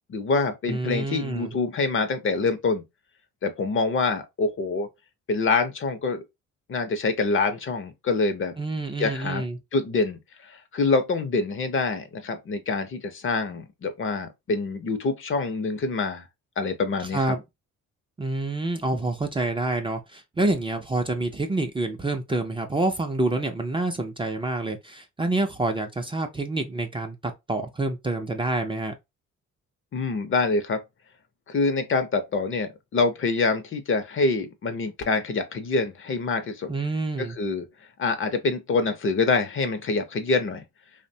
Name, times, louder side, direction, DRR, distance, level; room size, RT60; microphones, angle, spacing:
voice 1, 0.1-2.8 3.4-4.9 5.3-6.2 6.7-8.5 9.0-9.4 9.7-16.2 16.6-17.3 29.9-30.8 31.5-36.7 37.4-37.7 38.0-40.6, left 3 dB, 45° left, 0.7 m, -25 dB
voice 2, 0.7-1.5 8.6-9.6 17.0-17.4 18.2-28.9 36.7-37.4, right 2 dB, 15° right, 0.5 m, -27 dB
2.9 x 2.1 x 2.6 m
cardioid pair, 90°, 30 cm